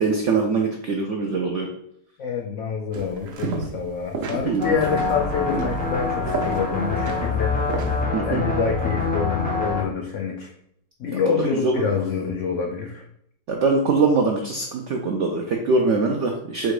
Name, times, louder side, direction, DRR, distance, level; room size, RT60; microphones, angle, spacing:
voice 1, 0.0-1.7 4.5-4.7 8.1-8.4 11.1-11.9 13.5-16.7, right 4 dB, 80° right, 2 dB, 0.6 m, -23 dB
voice 2, 2.2-7.5 8.3-10.5 11.0-13.0, left 6 dB, 80° left, 3 dB, 0.6 m, -26 dB
sound 1, 2.9-3.9 4.1-8.0, right 4 dB, 60° right, 0.9 m, -32 dB
sound 2, 4.6-9.8, left 3 dB, 10° left, 0.4 m, -25 dB
4.4 x 2.5 x 4.7 m, 0.73 s
omnidirectional pair, 1.8 m